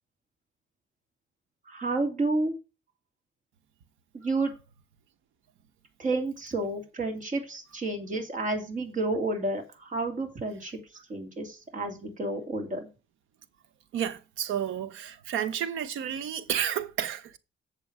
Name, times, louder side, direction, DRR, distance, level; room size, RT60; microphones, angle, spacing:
voice 1, 1.7-2.5 4.2-4.5 6.0-10.8 11.1-12.9, right 2 dB, 40° right, 2.7 m, -30 dB
voice 2, 13.9-17.4, right 9 dB, 90° right, 1.0 m, -31 dB
8.3 x 6.8 x 4.8 m
cardioid pair, 90°, 20 cm